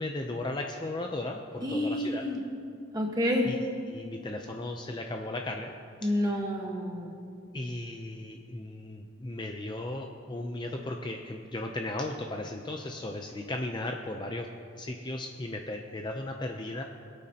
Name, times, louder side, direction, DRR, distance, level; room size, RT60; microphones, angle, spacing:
voice 1, 0.0-2.2 3.4-3.6 3.9-5.7 6.0-6.3 7.5-14.5 14.8-16.8, left 2 dB, 20° left, 3 dB, 0.5 m, -36 dB
voice 2, 1.6-2.4 2.9-3.5 6.0-7.1, left 1 dB, 20° right, 0 dB, 1.3 m, -29 dB
22.5 x 8.4 x 2.9 m, 2.3 s
head